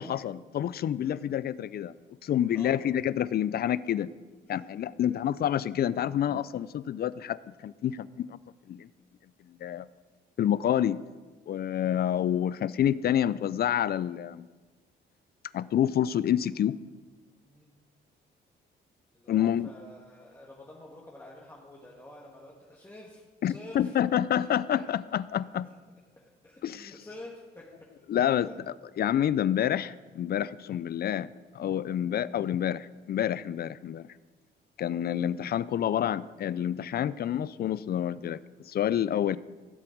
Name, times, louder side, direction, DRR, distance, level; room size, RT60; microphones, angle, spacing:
voice 1, 0.0-1.9 2.2-4.1 4.5-8.4 8.7-8.9 9.6-9.9 10.4-11.0 11.5-14.5 15.5-16.8 19.3-19.7 23.4-25.7 26.6-26.9 28.1-28.5 29.0-31.3 31.5-34.1 34.8-39.4, left 10 dB, 50° left, 18 dB, 0.5 m, -28 dB
voice 2, 2.5-2.8 4.5-4.8 5.1-5.2 17.4-17.7 19.1-24.0 24.4-24.8 26.1-27.9 28.4-28.6, left 1 dB, 15° left, -4 dB, 1.9 m, -48 dB
16.5 x 7.7 x 4.6 m, 1.3 s
cardioid pair, 90°, 20 cm